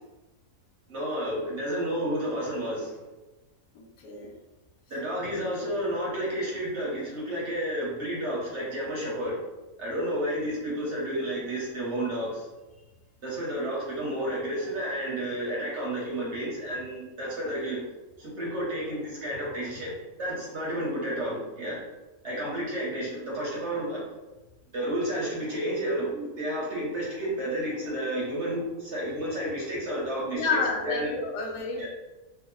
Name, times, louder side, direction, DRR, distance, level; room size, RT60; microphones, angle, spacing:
voice 1, 0.9-3.0 4.9-9.4 9.8-12.5 13.2-17.8 18.2-21.8 22.2-24.0 24.7-31.1 31.8-31.9, right 1 dB, 50° right, -5 dB, 1.0 m, -31 dB
voice 2, 3.7-4.3 30.3-31.9, left 3 dB, 90° left, 1 dB, 1.3 m, -30 dB
3.0 x 2.0 x 3.6 m, 1.1 s
omnidirectional pair, 1.7 m